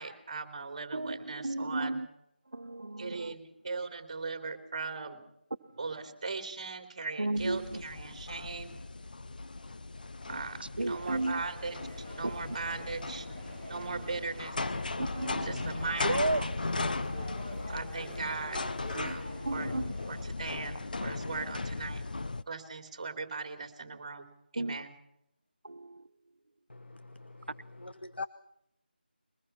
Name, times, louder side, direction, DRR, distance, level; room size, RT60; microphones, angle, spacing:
voice 1, 0.0-2.0 3.0-5.2 5.8-8.7 10.3-10.6 10.9-13.3 13.7-14.5 15.4-16.5 17.7-18.6 18.9-19.7 20.1-22.0 22.5-24.3 24.5-24.9, right 4 dB, 30° right, 3.0 m, -39 dB
voice 2, 0.9-2.1 2.5-3.3 7.2-7.8 10.8-11.4 12.2-12.3 13.7-14.0 15.0-15.8 16.0-16.4 18.9-19.2 19.4-19.9 21.3-21.4 24.6-24.8 25.6-26.1, right 2 dB, 70° right, 1.1 m, -34 dB
sound 1, 7.3-22.4, left 3 dB, 55° left, 0.7 m, -37 dB
sound 2, 10.8-20.2, equal, 25° left, 7.6 m, -47 dB
voice 3, 26.7-27.5 27.8-28.3, left 3 dB, 80° left, 1.0 m, -42 dB
22.0 x 20.0 x 5.9 m
figure-of-eight pair, 165°, 6 cm